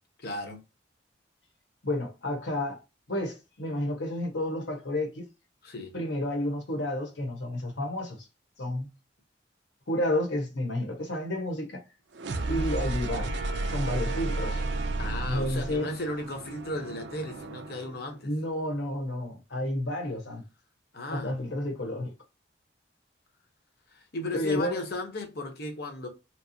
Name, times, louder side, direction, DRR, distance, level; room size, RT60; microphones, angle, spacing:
voice 1, 0.2-0.6 5.6-5.9 15.0-18.3 20.9-21.3 23.9-26.1, left 2 dB, 55° left, 0.9 m, -35 dB
voice 2, 1.8-2.8 3.1-5.2 5.9-8.3 8.6-8.9 9.9-11.8 12.5-13.3 13.7-14.6 15.3-15.9 18.2-20.4 21.1-22.1 24.3-24.8, left 1 dB, 75° left, 1.2 m, -31 dB
sound 1, 12.2-18.0, right 2 dB, 70° right, 0.5 m, -32 dB
4.6 x 2.0 x 2.7 m
head